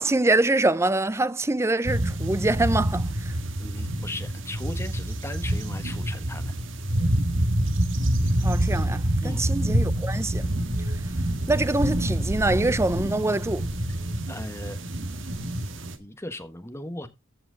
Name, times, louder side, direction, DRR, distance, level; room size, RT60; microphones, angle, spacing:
voice 1, 0.0-3.3 8.4-10.5 11.5-13.7, right 2 dB, 15° right, 0.5 m, -25 dB
sound 1, 1.8-16.0, right 1 dB, 65° right, 1.6 m, -27 dB
voice 2, 3.6-6.5 9.2-9.5 14.3-14.9 16.0-17.1, left 1 dB, 15° left, 1.3 m, -37 dB
14.5 x 6.0 x 3.8 m
head